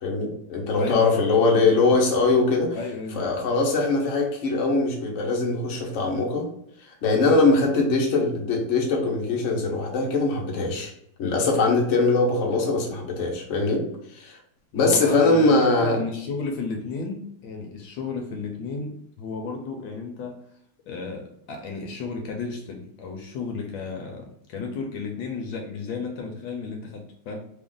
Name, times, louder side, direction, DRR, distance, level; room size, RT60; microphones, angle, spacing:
voice 1, 0.0-2.8 3.1-6.4 7.0-10.9 11.2-13.8 14.1-14.4 14.7-16.0, left 3 dB, 60° left, -1 dB, 0.8 m, -22 dB
voice 2, 0.8-1.8 2.7-3.3 14.7-20.4 20.9-27.4, left 4 dB, 75° left, 3 dB, 1.2 m, -33 dB
3.4 x 2.4 x 3.7 m, 0.71 s
omnidirectional pair, 2.3 m